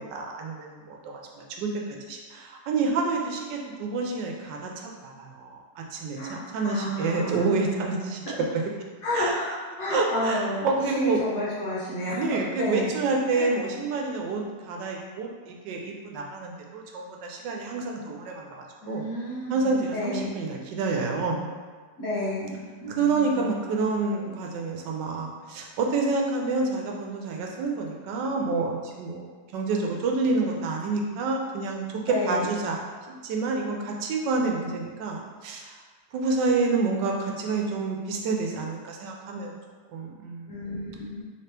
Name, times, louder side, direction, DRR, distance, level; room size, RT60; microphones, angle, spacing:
voice 1, 0.0-1.7 2.1-8.6 9.1-9.3 9.9-11.2 12.1-18.5 18.9-19.0 19.5-21.5 23.0-29.2 29.5-32.8 33.2-35.7 36.1-39.5 39.9-40.5, right 3 dB, 85° right, 0 dB, 1.3 m, -28 dB
voice 2, 6.2-7.5 9.0-9.5 9.8-10.7 10.9-12.2 12.6-12.9 13.3-13.5 18.8-20.4 22.0-23.6 32.0-32.5 40.5-41.2, left 1 dB, 55° left, -9 dB, 1.4 m, -31 dB
3.6 x 2.9 x 3.3 m, 1.5 s
omnidirectional pair, 1.8 m